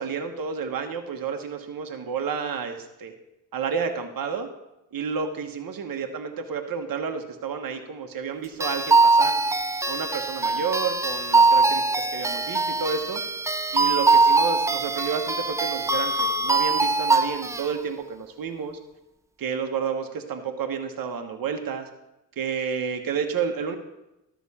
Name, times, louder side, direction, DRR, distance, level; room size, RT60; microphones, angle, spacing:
voice 1, 0.0-3.1 3.5-4.5 4.9-9.3 9.9-13.2 13.7-18.8 19.4-21.9 22.4-23.8, right 6 dB, 45° right, 4 dB, 1.3 m, -30 dB
sound 1, 8.6-17.7, right 3 dB, 5° right, 0.3 m, -22 dB
12.5 x 6.1 x 4.3 m, 0.93 s
hypercardioid pair, 55°, 49 cm